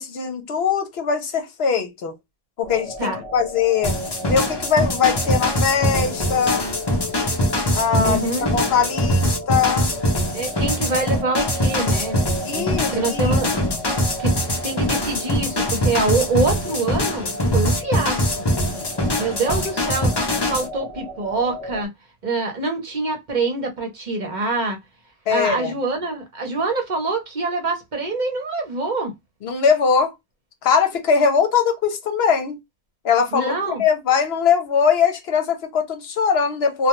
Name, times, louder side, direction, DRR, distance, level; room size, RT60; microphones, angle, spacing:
voice 1, 0.0-2.1 2.6-6.7 7.7-8.2 8.5-9.9 12.4-13.4 25.3-25.7 29.4-30.1 30.6-32.6 33.0-36.9, left 6 dB, 70° left, 0.9 m, -21 dB
sound 1, 2.6-21.9, left 1 dB, 5° right, 0.7 m, -34 dB
sound 2, 3.8-20.7, left 1 dB, 30° left, 0.6 m, -23 dB
voice 2, 7.9-8.5 10.3-12.2 12.5-13.5 14.2-14.3 14.6-18.3 19.2-20.1 20.5-21.9 22.2-24.8 25.3-29.1 33.3-33.8, right 3 dB, 50° right, 0.8 m, -25 dB
2.2 x 2.2 x 2.9 m
omnidirectional pair, 1.1 m